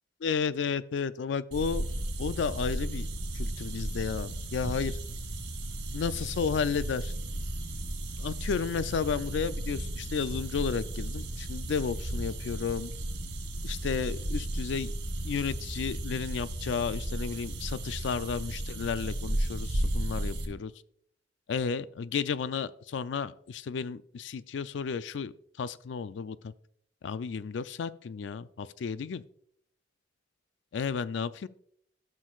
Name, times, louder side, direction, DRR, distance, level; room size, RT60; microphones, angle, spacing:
voice 1, 0.2-1.9 2.2-3.1 3.3-5.0 5.9-7.1 8.2-12.9 13.6-14.9 15.2-20.7 21.5-25.3 25.6-26.5 27.0-29.2 30.7-31.5, left 6 dB, 70° left, 15 dB, 0.4 m, -32 dB
sound 1, 1.5-20.4, right 1 dB, 90° right, 2.1 m, -34 dB
13.5 x 6.3 x 2.4 m, 0.67 s
head